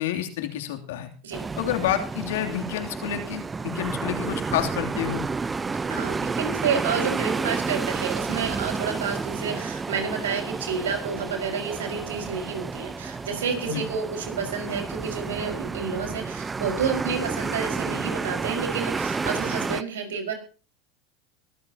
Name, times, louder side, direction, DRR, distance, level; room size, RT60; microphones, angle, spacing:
voice 1, 0.0-1.1 1.6-5.2 13.7-13.9, left 11 dB, 75° left, 4 dB, 2.9 m, -29 dB
sound 1, 1.3-19.8, right 4 dB, 20° right, 0.8 m, -31 dB
voice 2, 5.9-20.3, right 6 dB, 85° right, 3 dB, 5.1 m, -30 dB
23.5 x 14.5 x 2.9 m, 0.37 s
hypercardioid pair, 90°, 0 cm